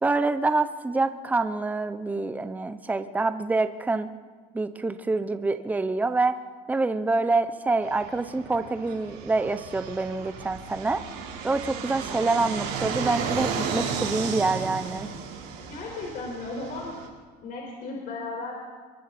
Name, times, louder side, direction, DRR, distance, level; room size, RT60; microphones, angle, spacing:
voice 1, 0.0-4.1 4.5-6.4 6.7-11.0 11.4-15.1, right 3 dB, 10° right, 10 dB, 0.8 m, -26 dB
Fixed-wing aircraft airplane, 7.8-17.1, right 6 dB, 65° right, 5.1 m, -34 dB
voice 2, 15.7-16.9 17.4-18.6, left 3 dB, 45° left, -1 dB, 4.9 m, -35 dB
27.5 x 23.5 x 4.3 m, 1.5 s
cardioid pair, 135°, 20 cm